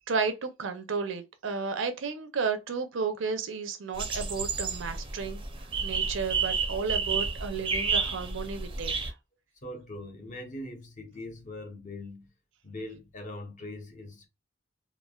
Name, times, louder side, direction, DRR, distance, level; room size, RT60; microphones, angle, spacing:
voice 1, 0.1-5.4 5.8-9.1, right 5 dB, 75° right, 0.6 m, -32 dB
sound 1, 4.0-9.1, right 5 dB, 25° right, 0.5 m, -31 dB
voice 2, 9.6-12.3 12.6-14.3, left 1 dB, 40° left, 0.8 m, -41 dB
3.1 x 2.4 x 2.3 m
head